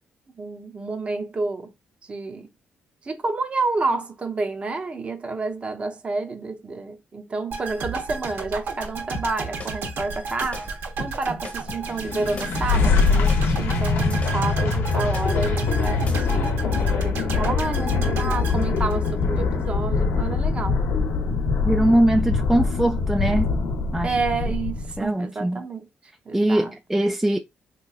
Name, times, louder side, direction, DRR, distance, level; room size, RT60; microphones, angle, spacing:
voice 1, 0.4-1.7 2.0-2.5 3.0-10.7 11.0-20.8 24.0-25.9 26.3-26.7, right 3 dB, 30° right, 0.7 m, -29 dB
sound 1, 7.5-19.5 19.8-20.0, right 4 dB, 80° right, 1.1 m, -33 dB
sound 2, 9.1-16.4, left 4 dB, 40° left, 1.1 m, -39 dB
sound 3, 11.9-25.0, left 4 dB, 80° left, 0.7 m, -23 dB
voice 2, 21.6-23.5 23.9-24.1 25.0-25.6 26.3-27.4, right 1 dB, 5° right, 0.3 m, -21 dB
3.6 x 2.9 x 2.3 m
cardioid pair, 120°, 4 cm